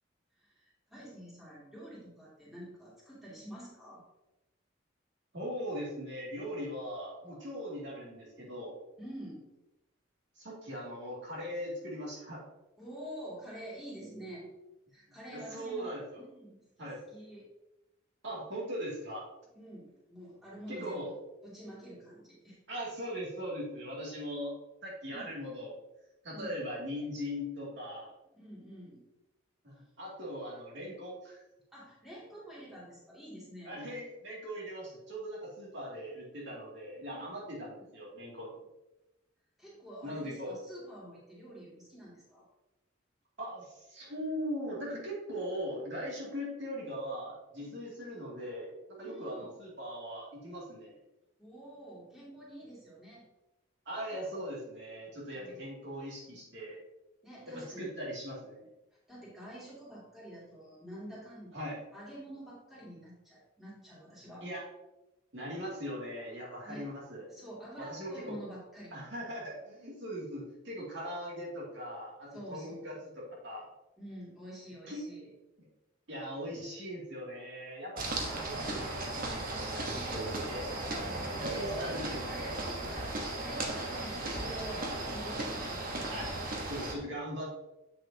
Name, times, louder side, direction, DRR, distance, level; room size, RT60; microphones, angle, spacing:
voice 1, 0.4-4.0 9.0-9.4 12.8-14.5 14.9-17.5 19.5-21.2 21.4-22.6 25.1-25.3 26.3-26.6 28.3-29.0 31.7-33.7 37.1-37.4 39.6-42.5 47.6-47.8 49.0-49.5 51.4-53.3 55.3-55.6 57.2-57.9 59.1-61.5 61.9-64.4 66.6-66.9 67.3-68.9 72.3-73.0 74.0-75.3 79.8-80.5 81.0-85.8, right 1 dB, ahead, -8 dB, 2.5 m, -47 dB
voice 2, 5.3-8.8 10.4-12.4 15.3-16.2 16.8-17.0 18.2-19.2 20.7-21.1 22.7-24.5 24.8-25.8 26.2-28.1 29.6-31.4 33.6-38.6 40.0-40.6 43.4-50.9 53.9-56.8 57.5-58.7 61.5-61.8 64.4-64.6 65.3-67.2 67.8-68.4 68.9-73.7 74.9-75.0 75.6-75.7 76.1-79.8 80.1-80.7 81.4-82.2 86.1-86.3 86.7-87.5, equal, 65° right, -4 dB, 2.5 m, -40 dB
sound 1, 78.0-86.9, right 2 dB, 45° right, 1.1 m, -36 dB
7.9 x 6.5 x 2.8 m, 0.95 s
head